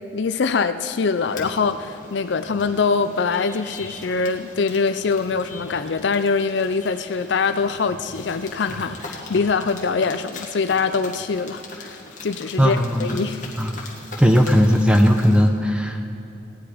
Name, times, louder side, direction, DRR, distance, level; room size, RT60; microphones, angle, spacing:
voice 1, 0.1-13.4, left 4 dB, 70° left, 10 dB, 0.5 m, -23 dB
sound 1, 1.0-15.5, left 2 dB, 40° left, 1.7 m, -40 dB
voice 2, 12.6-13.2 13.6-13.8 14.2-16.0, equal, 5° right, 4 dB, 0.7 m, -17 dB
17.0 x 11.0 x 5.0 m, 2.7 s
head